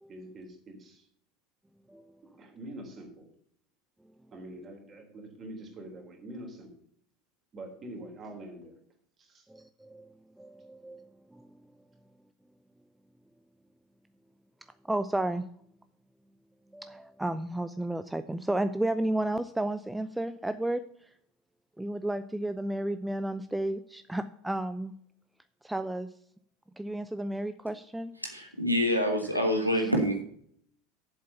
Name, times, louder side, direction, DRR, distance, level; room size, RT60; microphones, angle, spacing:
voice 1, 0.1-1.1 2.2-3.3 4.3-6.7 7.5-8.7 9.2-9.5, right 1 dB, 30° right, 2 dB, 3.4 m, -45 dB
voice 2, 9.5-10.1 10.4-11.5 14.9-15.4 16.7-20.8 21.8-24.9 25.6-26.1 26.8-28.1, right 1 dB, 5° right, 11 dB, 0.5 m, -32 dB
voice 3, 28.2-30.2, equal, 90° right, 3 dB, 1.4 m, -26 dB
8.1 x 7.6 x 6.9 m, 0.65 s
figure-of-eight pair, 75°, 0 cm